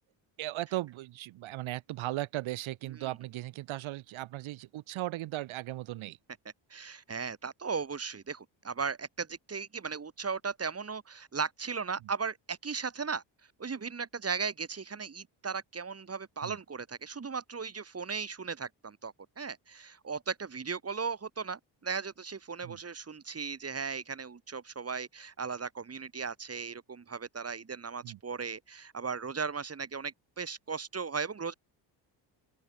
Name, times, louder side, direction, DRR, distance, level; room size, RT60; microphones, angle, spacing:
voice 1, 0.4-6.2 16.4-16.6 22.6-22.8 28.0-28.2, right 16 dB, 85° right, 7.9 m, -37 dB
voice 2, 6.7-13.2 13.6-31.5, right 5 dB, 30° right, 7.8 m, -37 dB
open air
cardioid pair, 105°, 46 cm